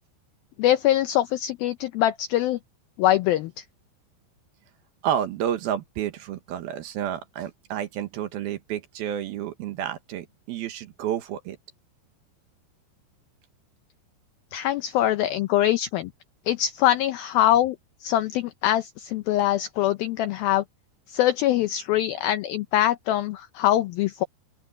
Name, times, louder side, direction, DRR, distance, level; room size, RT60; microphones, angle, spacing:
voice 1, 0.6-2.6 3.0-3.6 14.5-16.1 16.5-17.8 18.0-20.6 21.1-24.3, left 13 dB, 80° left, 2.1 m, -23 dB
voice 2, 5.0-11.6, right 10 dB, 70° right, 2.8 m, -30 dB
open air
omnidirectional pair, 5.1 m